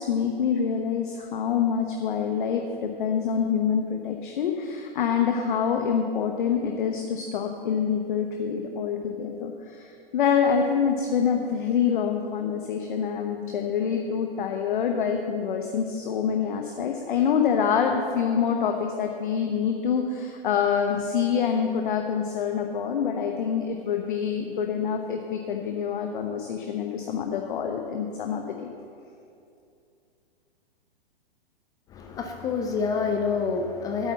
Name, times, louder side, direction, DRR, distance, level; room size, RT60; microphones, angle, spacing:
voice 1, 0.0-28.7, left 7 dB, 55° left, 3 dB, 1.1 m, -26 dB
voice 2, 31.9-34.1, left 5 dB, 10° left, 4 dB, 0.4 m, -27 dB
9.1 x 8.4 x 7.3 m, 2.5 s
figure-of-eight pair, 115°, 30 cm